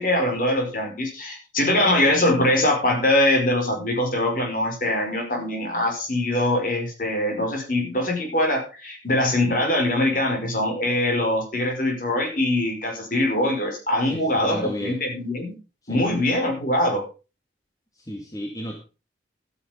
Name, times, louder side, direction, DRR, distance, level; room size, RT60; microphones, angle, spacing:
voice 1, 0.0-15.5 15.9-17.0, left 1 dB, 45° left, 2 dB, 5.2 m, -23 dB
voice 2, 14.1-15.0 15.8-16.2 18.0-18.8, equal, 20° left, 1 dB, 2.1 m, -33 dB
12.5 x 9.5 x 5.2 m, 0.33 s
head